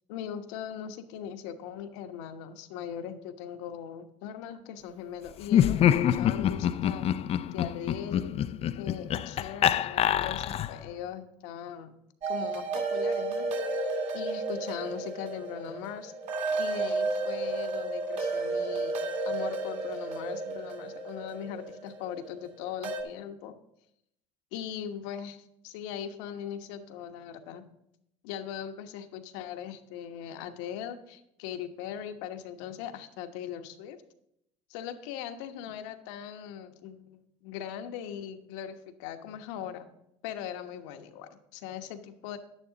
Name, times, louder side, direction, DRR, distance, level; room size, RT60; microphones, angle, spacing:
voice 1, 0.1-7.1 7.5-8.3 8.8-12.0 12.3-13.5 14.1-16.1 16.6-18.9 19.2-23.5 24.5-27.6 28.2-34.0 34.7-39.9 40.2-42.4, left 9 dB, 75° left, 8 dB, 1.2 m, -40 dB
Laughter, 5.4-10.9, left 10 dB, 40° left, 0.5 m, -26 dB
red blooded, 12.2-23.0, right 3 dB, 50° right, 2.3 m, -32 dB
11.0 x 9.9 x 4.0 m, 0.79 s
hypercardioid pair, 85°, 16 cm